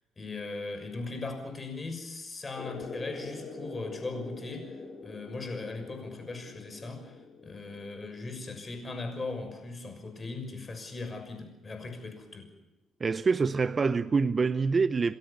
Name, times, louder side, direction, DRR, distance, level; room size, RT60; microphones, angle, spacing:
voice 1, 0.2-4.7 5.0-12.5, left 3 dB, 30° left, 6 dB, 6.3 m, -39 dB
sound 1, 2.5-9.7, left 3 dB, 55° left, 5.7 m, -45 dB
voice 2, 13.0-15.2, right 4 dB, 35° right, 12 dB, 0.7 m, -26 dB
29.5 x 13.0 x 8.3 m, 1.0 s
cardioid pair, 90°, 0 cm